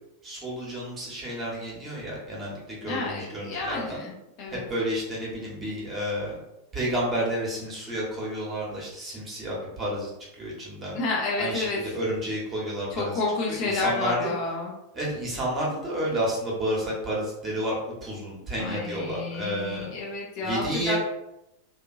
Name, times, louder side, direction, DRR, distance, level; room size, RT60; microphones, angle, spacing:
voice 1, 0.2-4.0 4.5-6.4 6.7-10.1 10.4-11.0 11.4-13.2 13.5-14.3 14.9-19.9 20.4-21.0, right 1 dB, 20° right, -5 dB, 1.1 m, -31 dB
voice 2, 2.9-4.1 4.4-4.6 10.9-11.9 12.9-14.7 18.6-21.0, left 3 dB, 45° left, -3 dB, 0.7 m, -30 dB
2.7 x 2.4 x 2.5 m, 0.87 s
figure-of-eight pair, 90°, 0 cm